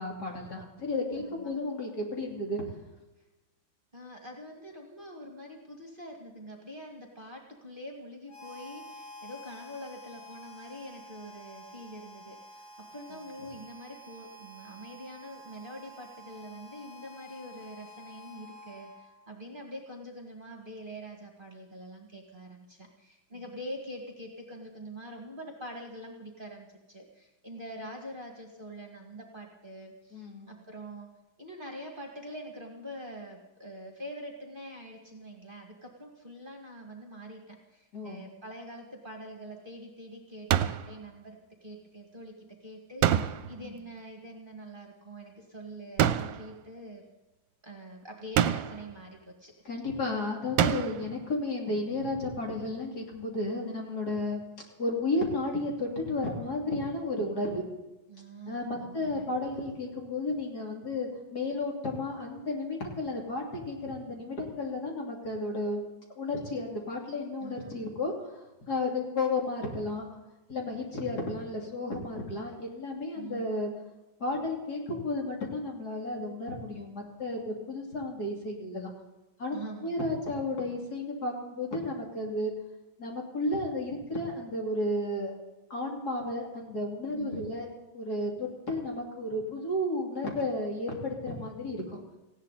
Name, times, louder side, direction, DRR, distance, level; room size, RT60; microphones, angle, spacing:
voice 1, 0.0-2.6 30.1-30.5 37.9-38.2 43.6-43.7 49.6-54.4 54.8-57.6 58.5-65.8 66.2-70.0 70.5-73.7 74.2-78.9 79.4-79.6 79.8-82.5 83.0-85.3 85.7-87.7 87.9-92.0, left 2 dB, 50° left, 0 dB, 3.3 m, -33 dB
voice 2, 1.2-1.5 3.9-12.6 12.9-31.1 31.4-42.3 42.6-47.0 47.6-49.5 58.1-59.3 67.4-67.9 73.1-73.5 79.5-79.9 87.1-87.5, equal, 25° right, 1 dB, 2.1 m, -45 dB
Harmonica, 8.3-19.3, left 1 dB, 20° left, 6.2 m, -49 dB
sound 1, 40.5-40.9 43.0-43.7 46.0-46.5 48.3-48.9 50.6-51.1, right 10 dB, 75° right, 1.4 m, -26 dB
19.0 x 16.0 x 4.1 m, 1.1 s
omnidirectional pair, 2.2 m